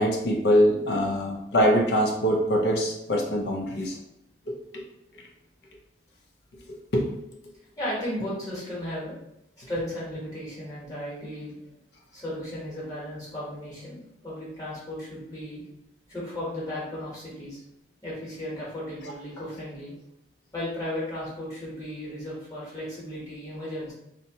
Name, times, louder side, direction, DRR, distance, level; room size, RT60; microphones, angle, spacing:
voice 1, 0.0-4.0 6.9-7.0, equal, 70° left, 0 dB, 0.5 m, -23 dB
voice 2, 7.8-9.1 9.7-11.6 12.1-15.6 16.1-17.6 18.0-19.9 20.5-23.9, left 1 dB, 20° left, -6 dB, 1.0 m, -35 dB
2.6 x 2.1 x 2.7 m, 0.81 s
head